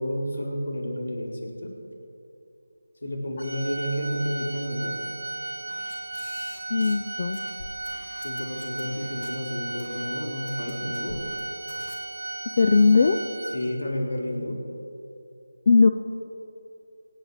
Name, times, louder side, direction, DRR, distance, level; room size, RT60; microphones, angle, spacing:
voice 1, 0.0-1.8 3.0-4.9 8.2-11.2 13.5-14.6, equal, 80° left, -1 dB, 4.0 m, -31 dB
Organ, 3.4-14.0, right 2 dB, 60° right, 0.8 m, -35 dB
sound 1, 5.7-7.1 7.3-9.4 9.8-10.1 10.5-11.4 11.7-12.0, left 2 dB, 55° left, 2.8 m, -45 dB
voice 2, 6.7-7.4 12.6-13.2 15.7-15.9, left 4 dB, 30° left, 9 dB, 0.4 m, -18 dB
26.0 x 8.8 x 4.9 m, 2.7 s
figure-of-eight pair, 175°, 0 cm